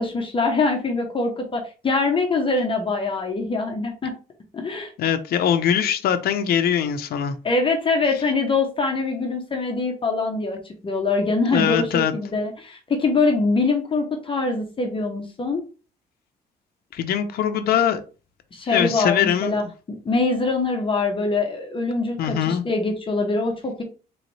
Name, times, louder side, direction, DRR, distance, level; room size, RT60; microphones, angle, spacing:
voice 1, 0.0-4.1 4.5-4.9 7.4-15.6 18.5-23.8, left 3 dB, 30° left, 0.8 m, -23 dB
voice 2, 5.0-7.4 11.4-12.1 16.9-18.0 18.7-19.5 22.2-22.6, left 9 dB, 65° left, 0.6 m, -22 dB
4.0 x 3.1 x 3.1 m
cardioid pair, 110°, 17 cm